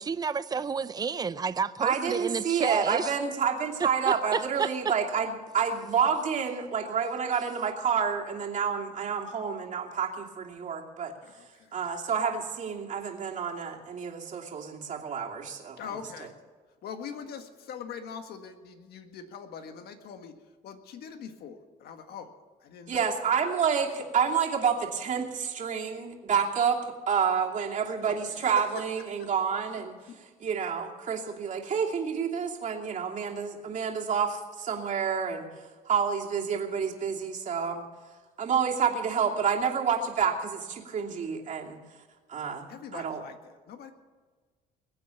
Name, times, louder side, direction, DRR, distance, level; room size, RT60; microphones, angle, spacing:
voice 1, 0.0-3.1 4.1-4.7, right 5 dB, 25° right, 14 dB, 0.6 m, -30 dB
voice 2, 1.8-11.1 11.7-15.8 22.9-26.8 27.1-30.0 30.4-35.5 35.9-37.9 38.4-41.8 42.3-43.2, right 6 dB, 45° right, -1 dB, 2.7 m, -29 dB
voice 3, 11.2-11.7 15.8-16.3 16.8-20.3 20.6-22.3 22.6-23.1 28.1-28.7 29.2-29.3 30.1-30.2 42.7-43.9, left 7 dB, 70° left, 7 dB, 1.7 m, -42 dB
21.5 x 8.6 x 7.1 m, 1.4 s
cardioid pair, 110°, 17 cm